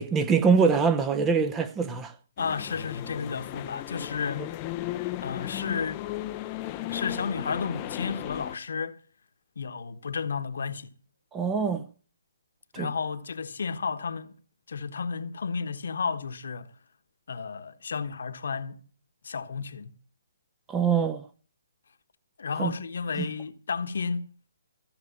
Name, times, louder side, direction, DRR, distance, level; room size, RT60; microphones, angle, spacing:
voice 1, 0.0-2.1 4.4-4.5 11.3-11.8 12.7-12.9 20.7-21.2 22.6-22.7 23.2-23.3, right 5 dB, 15° right, 0.9 m, -24 dB
voice 2, 2.4-4.6 5.2-6.0 6.9-9.0 9.6-10.9 12.7-14.3 14.7-16.7 17.3-18.8 19.2-19.9 22.4-24.3, left 5 dB, 70° left, 1.2 m, -32 dB
sound 1, 2.4-8.6, left 15 dB, 30° left, 0.7 m, -35 dB
15.0 x 6.7 x 8.1 m
hypercardioid pair, 145°, 0 cm